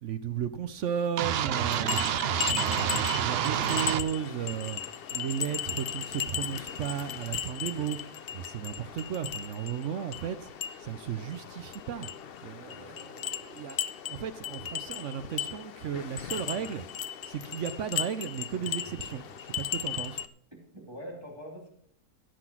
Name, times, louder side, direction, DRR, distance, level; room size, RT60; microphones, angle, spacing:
voice 1, 0.0-2.1 2.5-4.8 5.1-8.0 8.3-10.5 10.8-12.1 12.4-16.8 17.2-20.2, right 8 dB, 60° right, 0.8 m, -34 dB
sound 1, 1.2-4.0, right 9 dB, 90° right, 0.5 m, -28 dB
sound 2, 1.5-20.3, left 8 dB, 60° left, 0.6 m, -37 dB
voice 2, 12.7-13.0 18.5-19.1 20.7-21.7, equal, 15° right, 2.7 m, -45 dB
16.5 x 6.0 x 6.0 m
omnidirectional pair, 1.7 m